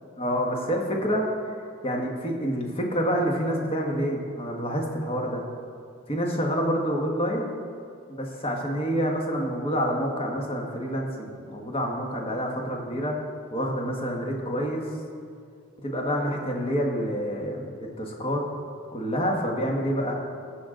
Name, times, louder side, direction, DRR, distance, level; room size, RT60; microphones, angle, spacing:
voice 1, 0.2-1.6 1.8-5.4 6.1-7.5 8.1-13.2 13.5-14.8 15.8-18.4 18.9-20.2, equal, 30° left, 0 dB, 1.4 m, -27 dB
18.5 x 6.4 x 3.8 m, 2.3 s
head